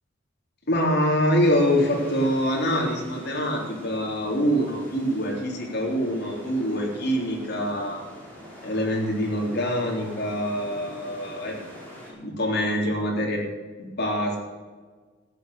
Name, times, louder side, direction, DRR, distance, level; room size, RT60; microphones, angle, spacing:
voice 1, 0.7-8.0 8.6-11.6 12.1-13.4 13.8-14.4, equal, 55° left, -1 dB, 3.6 m, -25 dB
sound 1, 1.4-12.1, equal, 10° left, 5.3 m, -44 dB
14.0 x 9.0 x 6.8 m, 1.5 s
head